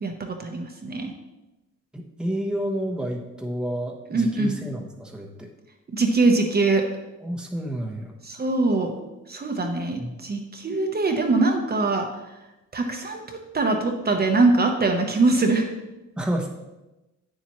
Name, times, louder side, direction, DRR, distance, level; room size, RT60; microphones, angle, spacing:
voice 1, 0.0-1.1 4.1-4.6 5.9-6.8 8.2-8.9 9.3-12.1 12.7-15.7, right 3 dB, 30° right, 3 dB, 1.0 m, -22 dB
voice 2, 1.9-5.5 7.2-8.1 10.0-10.2 16.2-16.5, right 1 dB, 5° right, 1 dB, 1.1 m, -30 dB
8.7 x 7.3 x 3.1 m, 1.0 s
cardioid pair, 90°, 30 cm